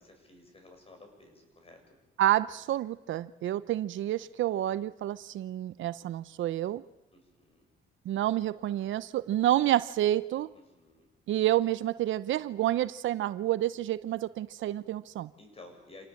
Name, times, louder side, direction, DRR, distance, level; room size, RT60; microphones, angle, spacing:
voice 1, 0.0-2.0 7.1-7.7 10.5-11.1 15.4-16.0, left 2 dB, 30° left, 5 dB, 7.4 m, -54 dB
voice 2, 2.2-6.8 8.0-10.5 11.3-15.3, right 13 dB, 75° right, 16 dB, 0.8 m, -29 dB
27.5 x 18.5 x 8.6 m, 1.0 s
cardioid pair, 90°, 20 cm